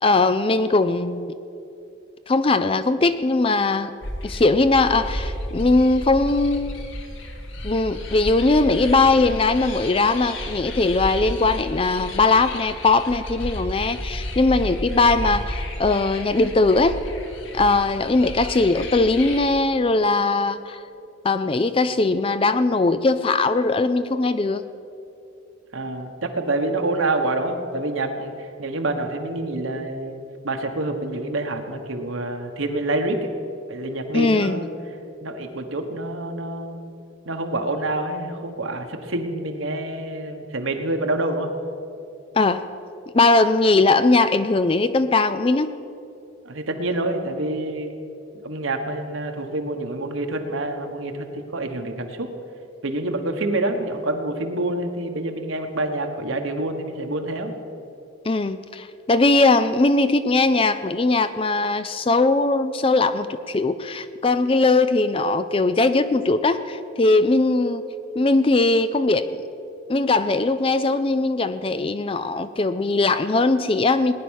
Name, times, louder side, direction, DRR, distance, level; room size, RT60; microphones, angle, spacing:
voice 1, 0.0-1.3 2.3-3.9 4.2-6.9 7.6-17.0 17.5-20.8 21.2-24.6 34.1-34.6 42.4-42.6 43.1-45.7 58.3-67.8 68.2-69.4 69.9-74.1, left 3 dB, 25° left, 12 dB, 0.4 m, -20 dB
sound 1, 4.0-19.4, left 1 dB, 70° left, 1.8 m, -32 dB
voice 2, 25.7-33.3 33.7-34.7 35.2-36.8 37.2-41.5 46.4-47.9 48.4-52.3 52.8-57.5, right 2 dB, 75° right, 4 dB, 1.4 m, -27 dB
19.0 x 10.0 x 6.4 m, 2.6 s
head